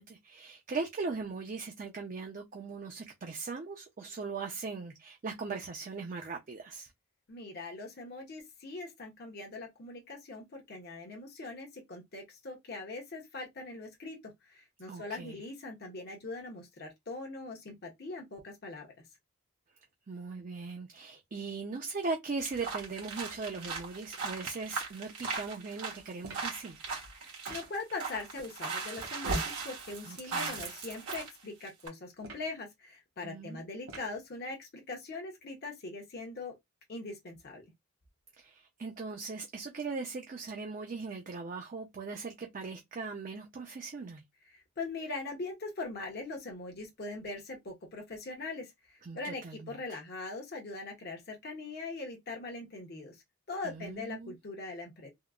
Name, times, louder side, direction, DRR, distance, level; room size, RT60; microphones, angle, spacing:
voice 1, 0.0-6.9 14.9-15.4 20.1-26.8 30.0-30.6 33.2-33.6 38.4-44.2 49.0-50.0 53.6-54.3, right 4 dB, 35° right, 0.4 m, -39 dB
voice 2, 7.3-14.2 14.4-18.9 27.1-36.5 36.9-37.7 44.5-53.2 53.5-55.1, left 3 dB, 45° left, 0.7 m, -41 dB
sound 1, 22.4-31.3 31.7-31.9, right 4 dB, 90° right, 1.6 m, -38 dB
sound 2, 26.2-26.6 27.5-27.8 28.9-29.2 30.5-30.8 32.2-32.6 33.9-34.2, right 2 dB, 70° right, 1.2 m, -48 dB
3.6 x 2.0 x 2.3 m
head